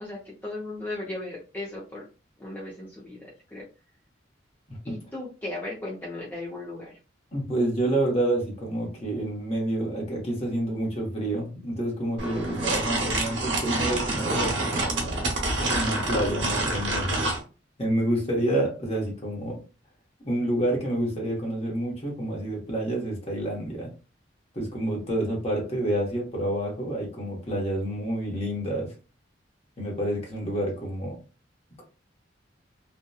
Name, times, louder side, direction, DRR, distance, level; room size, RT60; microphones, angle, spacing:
voice 1, 0.0-2.0 2.4-3.6 4.8-7.0, left 2 dB, 10° left, -6 dB, 0.5 m, -36 dB
voice 2, 7.3-15.2 15.7-17.2 17.8-19.6 20.2-23.9 24.5-28.9 29.8-31.2, right 1 dB, 35° left, -2 dB, 1.0 m, -28 dB
sound 1, 12.2-17.4, right 2 dB, 80° right, 0.8 m, -27 dB
2.7 x 2.2 x 2.2 m, 0.33 s
head